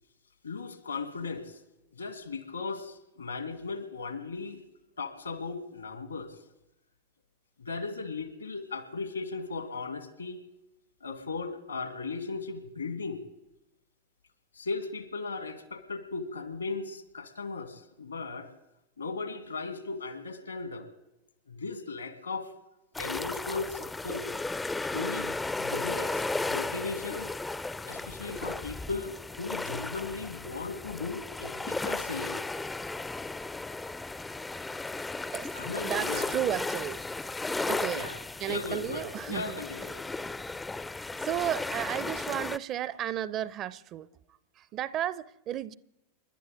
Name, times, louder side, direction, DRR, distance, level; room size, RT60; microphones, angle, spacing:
voice 1, 0.4-1.6 1.9-4.6 5.0-6.4 7.6-10.4 11.0-13.2 14.5-18.5 19.0-20.9 21.5-22.5 23.0-24.4 24.9-27.3 27.8-32.5 35.6-36.3 37.9-38.2 38.5-40.0, left 4 dB, 75° left, 2.1 m, -37 dB
sound 1, 22.9-42.6, left 3 dB, 10° left, 0.5 m, -35 dB
voice 2, 35.8-37.0 37.7-38.1 38.4-39.6 41.2-44.1 44.6-45.7, right 11 dB, 35° right, 0.6 m, -33 dB
30.0 x 11.5 x 4.1 m
figure-of-eight pair, 90°, 0 cm